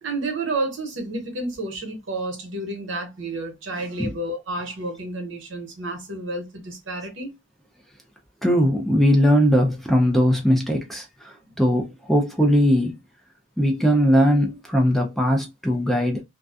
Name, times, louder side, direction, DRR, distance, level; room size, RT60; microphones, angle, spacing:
voice 1, 0.0-7.3, right 2 dB, 75° right, 0.9 m, -30 dB
voice 2, 8.4-13.0 13.6-16.2, equal, ahead, 0.4 m, -20 dB
2.4 x 2.3 x 2.4 m
head